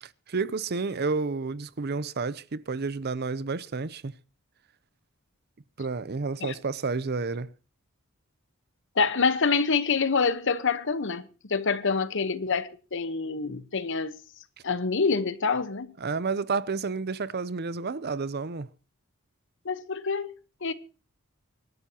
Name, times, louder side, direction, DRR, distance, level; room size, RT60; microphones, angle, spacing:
voice 1, 0.3-4.1 5.8-7.5 16.0-18.7, right 4 dB, 50° right, 0.6 m, -30 dB
voice 2, 9.0-14.2 14.6-15.9 19.6-20.3 20.6-20.7, left 4 dB, 60° left, 1.0 m, -26 dB
25.0 x 12.0 x 2.9 m
head